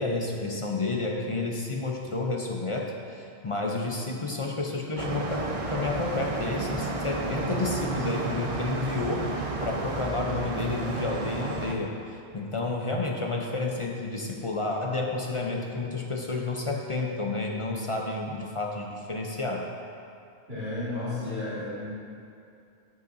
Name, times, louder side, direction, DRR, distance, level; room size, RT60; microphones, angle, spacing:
voice 1, 0.0-9.3 9.6-19.7, left 3 dB, 35° left, 0 dB, 0.6 m, -30 dB
sound 1, 5.0-11.7, right 3 dB, 40° right, 0.6 m, -32 dB
voice 2, 20.5-21.9, left 2 dB, 65° right, -15 dB, 2.5 m, -32 dB
14.5 x 5.7 x 2.6 m, 2.5 s
omnidirectional pair, 1.1 m